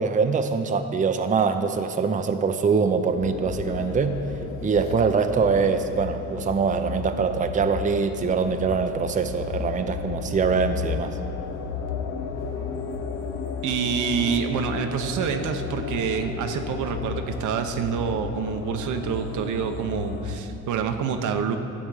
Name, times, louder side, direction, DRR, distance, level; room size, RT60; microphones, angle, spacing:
voice 1, 0.0-4.2 4.6-11.2, right 5 dB, 25° right, 7 dB, 0.6 m, -23 dB
sound 1, 3.2-20.4, left 5 dB, 75° left, 0.9 m, -33 dB
voice 2, 13.6-21.6, right 6 dB, 80° right, 6 dB, 0.9 m, -27 dB
13.0 x 4.3 x 7.9 m, 2.7 s
cardioid pair, 90°, 30 cm